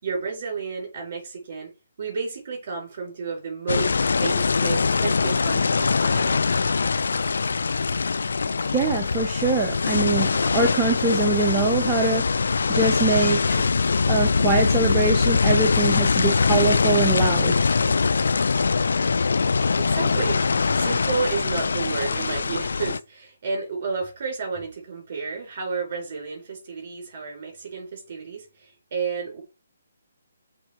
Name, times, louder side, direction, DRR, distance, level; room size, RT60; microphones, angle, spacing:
voice 1, 0.0-1.7 2.0-6.4 19.8-20.4 20.7-29.4, right 5 dB, 40° right, 4.3 m, -31 dB
sound 1, 3.7-23.0, left 4 dB, 60° left, 0.3 m, -22 dB
voice 2, 8.4-13.6 14.1-17.6, right 3 dB, 15° right, 0.8 m, -24 dB
7.1 x 3.5 x 4.5 m
figure-of-eight pair, 140°, 0 cm